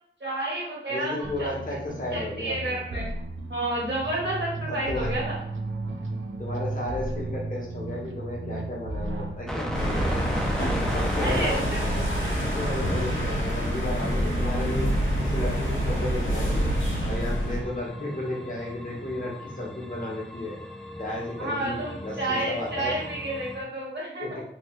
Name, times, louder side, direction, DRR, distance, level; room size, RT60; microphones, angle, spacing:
voice 1, 0.2-1.1 1.4-1.5 2.1-3.1 3.5-5.3 11.2-12.0 21.4-24.4, right 1 dB, 60° right, -5 dB, 1.3 m, -30 dB
voice 2, 0.9-3.0 4.7-5.1 6.4-10.4 10.8-11.6 12.5-14.9 15.2-16.7 17.0-20.6 21.0-22.9 24.2-24.4, left 2 dB, 40° left, -3 dB, 1.0 m, -34 dB
sound 1, 1.2-10.8, right 2 dB, 80° right, 0.4 m, -35 dB
sound 2, 9.5-23.6, equal, 5° left, 0.5 m, -37 dB
sound 3, 9.7-17.6, equal, 75° left, 0.8 m, -26 dB
2.9 x 2.2 x 3.1 m, 0.68 s
wide cardioid pair, 45°, 20 cm